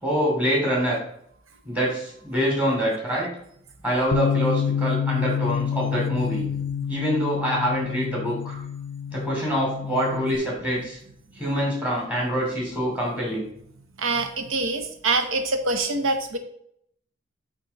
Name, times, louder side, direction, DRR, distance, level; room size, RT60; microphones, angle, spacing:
voice 1, 0.0-1.0 1.6-3.3 3.8-6.5 6.9-8.6 9.1-11.0 11.4-13.5, equal, 5° right, -4 dB, 2.9 m, -25 dB
Bass guitar, 4.1-10.4, left 8 dB, 75° left, 0.3 m, -28 dB
voice 2, 14.0-16.4, right 3 dB, 90° right, 7 dB, 0.8 m, -25 dB
8.4 x 3.9 x 4.1 m, 0.70 s
head